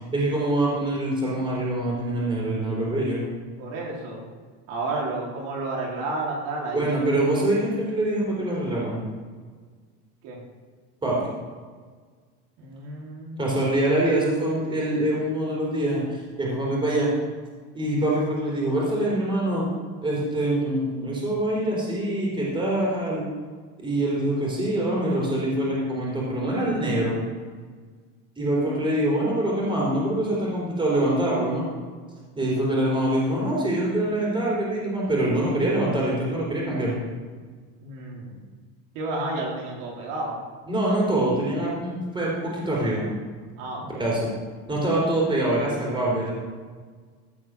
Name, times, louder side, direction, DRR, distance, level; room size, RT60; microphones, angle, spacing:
voice 1, 0.0-3.2 6.7-9.0 11.0-11.3 13.4-17.1 17.7-19.7 20.0-23.2 23.8-27.1 28.4-31.6 32.4-37.0 40.7-43.1 43.9-44.3 44.7-46.3, right 1 dB, 15° right, -4 dB, 4.1 m, -24 dB
voice 2, 3.6-4.2 4.7-6.9 10.2-10.4 12.6-13.4 37.8-38.4 38.9-40.4 43.6-44.0, right 2 dB, 65° right, -3 dB, 3.8 m, -31 dB
15.5 x 5.9 x 6.4 m, 1.5 s
cardioid pair, 150°, 34 cm